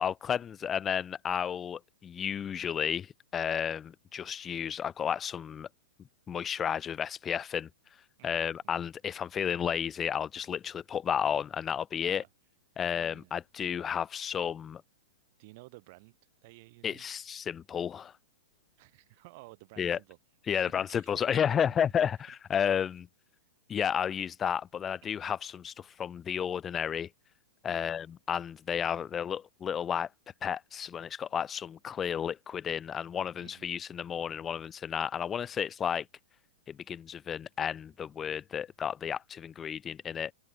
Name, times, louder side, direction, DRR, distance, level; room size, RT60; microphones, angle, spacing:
voice 1, 0.0-5.7 6.3-7.7 8.2-12.2 12.8-14.8 16.8-18.1 19.8-20.0 20.5-23.1 23.7-27.1 27.6-30.1 30.4-36.1 36.7-40.3, left 8 dB, 20° left, 0.5 m, -32 dB
voice 2, 8.2-8.9 12.0-12.3 12.9-13.4 15.4-16.2 16.4-17.0 18.8-20.2 20.6-21.1 22.6-22.7 25.0-25.1 27.6-27.9 28.8-29.3 33.4-33.7, right 24 dB, 45° right, 4.2 m, -54 dB
hypercardioid pair, 150°, 0 cm